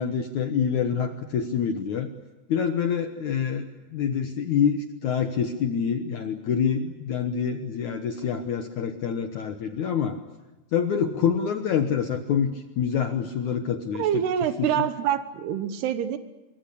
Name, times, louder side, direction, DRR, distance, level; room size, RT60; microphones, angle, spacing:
voice 1, 0.0-2.1 2.5-10.2 10.7-14.2 14.6-14.9, left 7 dB, 65° left, 8 dB, 1.9 m, -26 dB
voice 2, 13.9-16.2, right 10 dB, 75° right, 11 dB, 3.2 m, -26 dB
24.5 x 23.0 x 8.5 m, 1.1 s
omnidirectional pair, 4.9 m